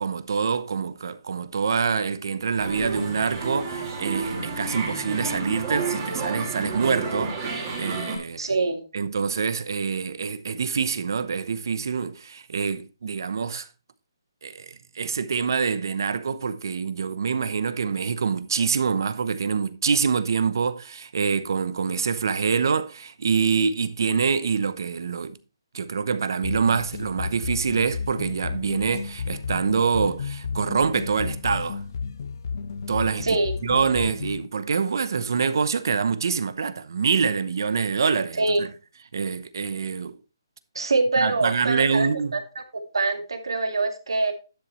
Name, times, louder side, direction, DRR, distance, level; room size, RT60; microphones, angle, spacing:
voice 1, 0.0-8.4 8.9-13.7 14.4-25.4 25.7-31.8 32.9-33.3 33.6-38.7 39.1-40.2 41.2-42.3, right 5 dB, 55° right, 0.8 m, -25 dB
sound 1, 2.6-8.2, right 4 dB, 20° right, 2.7 m, -31 dB
voice 2, 8.4-8.8 33.2-33.5 38.4-38.6 40.7-42.1 42.3-44.3, right 3 dB, 85° right, 2.1 m, -24 dB
sound 2, 26.4-34.5, left 5 dB, 45° left, 0.7 m, -33 dB
11.5 x 7.0 x 3.1 m
hypercardioid pair, 170°, 2 cm